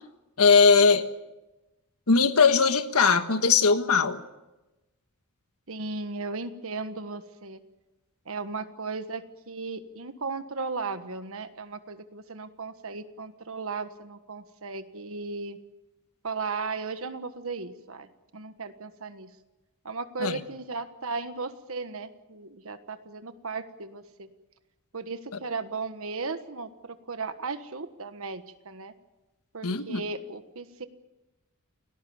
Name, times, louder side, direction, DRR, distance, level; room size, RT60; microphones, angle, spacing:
voice 1, 0.4-1.1 2.1-4.2 20.2-20.4 29.6-30.0, left 5 dB, 80° left, 9 dB, 1.5 m, -20 dB
voice 2, 5.7-7.6 8.2-15.6 16.2-19.3 19.8-24.3 24.9-28.9 29.5-30.9, right 4 dB, 70° right, 9 dB, 1.4 m, -36 dB
29.5 x 18.5 x 7.2 m, 1.0 s
head